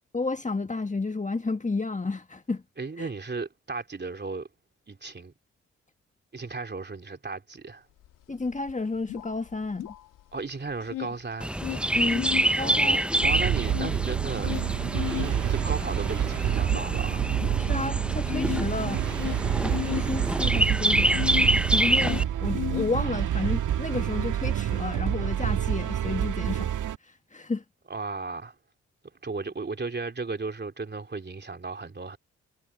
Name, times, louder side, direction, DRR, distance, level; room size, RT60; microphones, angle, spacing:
voice 1, 0.1-2.6 3.0-3.1 8.3-9.9 11.9-12.3 12.6-13.0 17.6-19.0 19.6-21.2 21.7-27.6, left 3 dB, 25° left, 1.7 m, -31 dB
voice 2, 2.8-4.5 4.9-5.3 6.3-7.8 10.3-11.6 12.6-14.5 15.2-17.3 27.9-28.5 29.2-32.2, right 4 dB, 35° right, 3.0 m, -35 dB
sound 1, 8.0-8.1 8.4-10.4 10.7-12.5 12.9-21.6 21.8-23.4, left 14 dB, 80° left, 2.6 m, -35 dB
Chirp tweet, 11.4-22.2, right 1 dB, 5° right, 0.8 m, -27 dB
sound 2, 13.2-27.0, right 10 dB, 70° right, 1.9 m, -28 dB
hypercardioid pair, 45°, 31 cm